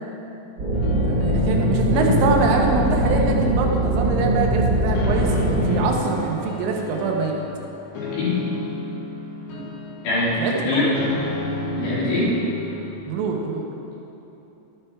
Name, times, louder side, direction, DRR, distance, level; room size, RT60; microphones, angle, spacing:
sound 1, 0.6-5.8, right 1 dB, 45° right, 1.4 m, -21 dB
sound 2, 0.7-12.9, left 2 dB, 85° left, 4.1 m, -33 dB
voice 1, 1.1-7.4 9.5-9.7 10.4-10.9 13.1-13.7, right 4 dB, 80° right, 1 dB, 3.5 m, -24 dB
voice 2, 10.0-10.9 11.7-12.3, left 3 dB, 60° left, -9 dB, 5.1 m, -23 dB
12.5 x 9.5 x 4.6 m, 3.0 s
omnidirectional pair, 5.8 m